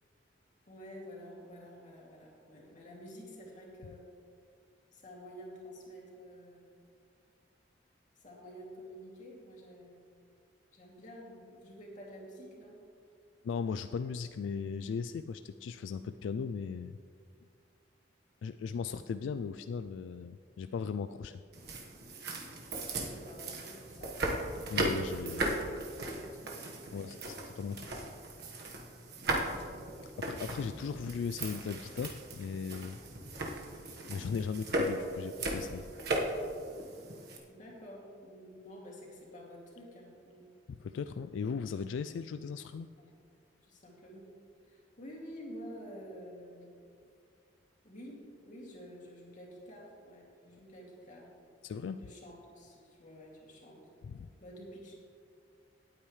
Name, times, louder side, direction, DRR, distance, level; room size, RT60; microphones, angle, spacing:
voice 1, 0.7-4.1 4.9-6.7 8.2-10.1 10.7-12.8 22.9-24.5 25.6-27.1 29.2-29.8 37.5-40.5 43.0-43.1 43.6-44.3 44.6-46.8 47.8-51.3 52.0-53.9 54.4-54.9, equal, 45° left, -3 dB, 2.6 m, -50 dB
voice 2, 13.4-17.0 18.4-21.4 24.7-25.6 26.9-27.9 30.2-33.0 34.1-35.9 40.7-42.9 51.6-52.1 54.0-54.3, left 6 dB, 85° left, 11 dB, 0.3 m, -38 dB
sound 1, 21.5-37.4, right 2 dB, 60° right, 1.4 m, -37 dB
18.0 x 8.7 x 3.2 m, 2.2 s
head